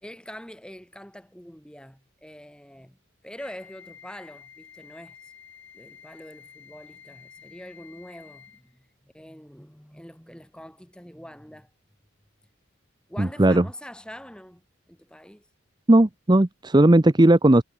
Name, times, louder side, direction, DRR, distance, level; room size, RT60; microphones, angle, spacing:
voice 1, 0.0-3.0 3.2-5.3 5.7-11.7 13.1-15.4, equal, 5° left, 3.2 m, -44 dB
Wind instrument woodwind instrument, 3.4-8.7, left 8 dB, 65° left, 4.7 m, -50 dB
voice 2, 13.2-13.6 15.9-17.6, right 1 dB, 20° right, 0.7 m, -17 dB
head